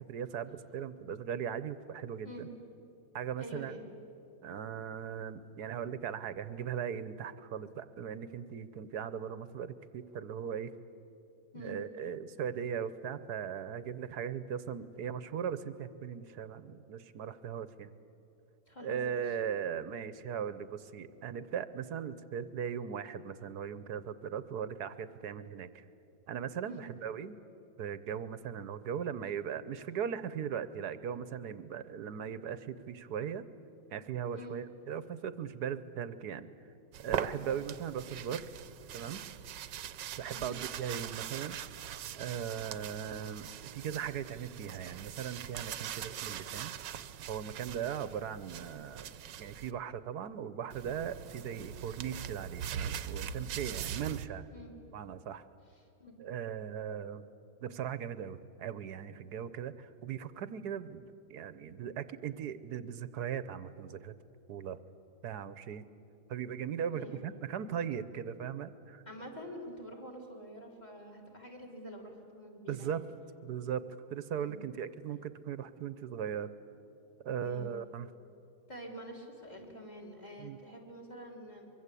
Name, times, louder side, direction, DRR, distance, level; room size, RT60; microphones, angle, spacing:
voice 1, 0.1-2.5 3.1-3.8 4.4-10.7 11.5-17.9 18.8-25.8 26.3-27.4 27.8-33.4 33.9-36.5 37.0-38.5 38.9-39.2 40.2-41.6 42.1-46.7 47.3-54.5 54.9-55.4 56.2-57.2 57.6-61.0 61.3-64.1 64.5-64.8 65.2-65.8 66.3-69.0 72.7-73.0 73.4-76.5 77.2-78.1 80.4-80.6, right 8 dB, 65° right, 14 dB, 1.3 m, -38 dB
voice 2, 3.4-3.9 11.5-11.8 18.7-19.0 26.6-26.8 34.3-34.6 40.3-40.6 48.6-48.8 54.5-54.7 56.0-56.1 66.9-67.2 69.1-73.0 74.4-74.6 77.4-77.7 78.7-81.7, equal, 25° left, 2 dB, 3.5 m, -47 dB
sound 1, 36.9-49.7 50.7-54.3, right 9 dB, 90° right, 1.5 m, -42 dB
24.0 x 23.0 x 8.3 m, 2.9 s
omnidirectional pair, 1.9 m